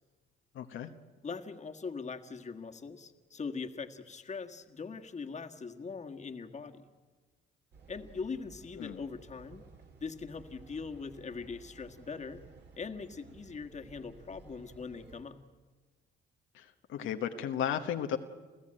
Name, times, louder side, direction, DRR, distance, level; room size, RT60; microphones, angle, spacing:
voice 1, 0.5-0.9 8.8-9.0 16.5-18.2, left 9 dB, 80° left, 5 dB, 1.2 m, -34 dB
voice 2, 1.2-6.9 7.9-9.6 10.0-12.4 12.8-15.4, left 5 dB, 35° left, 5 dB, 1.7 m, -41 dB
sound 1, 7.7-15.2, right 4 dB, 60° right, 3.6 m, -56 dB
29.0 x 15.0 x 8.9 m, 1.4 s
cardioid pair, 90°, 20 cm